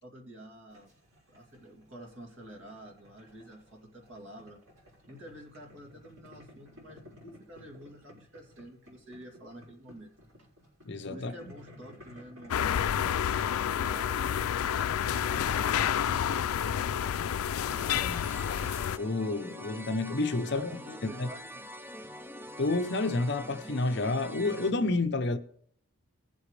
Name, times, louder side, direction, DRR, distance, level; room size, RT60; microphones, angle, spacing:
voice 1, 0.0-0.9 1.3-4.6 5.1-10.1 11.1-14.4 15.1-16.5 20.5-21.7, equal, 60° right, 2.8 m, -48 dB
Boiling, 0.7-18.8, left 1 dB, 80° right, 5.6 m, -54 dB
voice 2, 10.9-11.3 17.9-18.3 18.9-20.7 21.2-21.3 22.6-25.4, left 2 dB, 55° left, 0.8 m, -30 dB
sound 1, 12.5-19.0, left 9 dB, 85° left, 0.4 m, -29 dB
sound 2, 17.6-24.7, equal, 10° right, 0.4 m, -45 dB
19.5 x 7.9 x 3.3 m
head